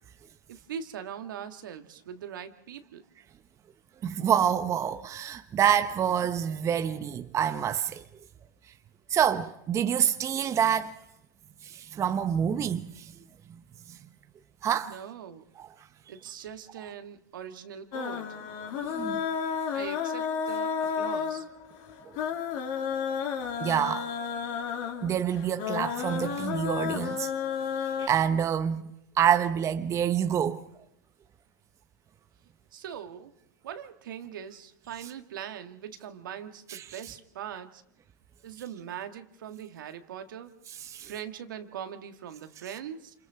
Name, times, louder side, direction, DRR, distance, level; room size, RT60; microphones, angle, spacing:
voice 1, 0.5-3.0 14.8-15.4 16.1-18.3 19.7-21.5 32.7-33.3 33.6-37.8 38.4-40.5 41.0-43.1, right 9 dB, 75° right, 1.9 m, -41 dB
voice 2, 4.0-8.0 9.1-10.9 11.6-13.1 13.9-14.0 14.6-14.9 15.6-15.7 18.8-19.2 23.6-24.1 25.0-27.3 28.0-28.8 29.2-30.6 36.7-37.0 40.9-41.1, right 9 dB, 25° right, 1.0 m, -27 dB
sound 1, 17.9-28.1, left 7 dB, 50° left, 3.0 m, -32 dB
29.0 x 28.0 x 3.7 m
hypercardioid pair, 105°, 11 cm